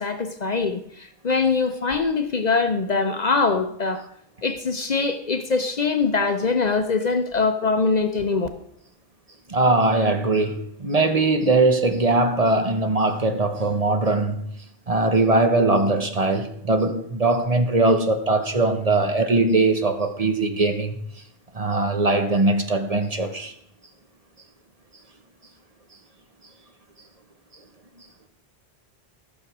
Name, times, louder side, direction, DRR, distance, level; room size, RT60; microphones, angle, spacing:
voice 1, 0.0-4.0 4.4-8.5, left 4 dB, 45° left, 0.8 m, -23 dB
voice 2, 9.5-14.4 14.9-21.0 21.5-23.5, right 2 dB, 40° right, 1.0 m, -21 dB
14.5 x 6.4 x 6.0 m
omnidirectional pair, 1.0 m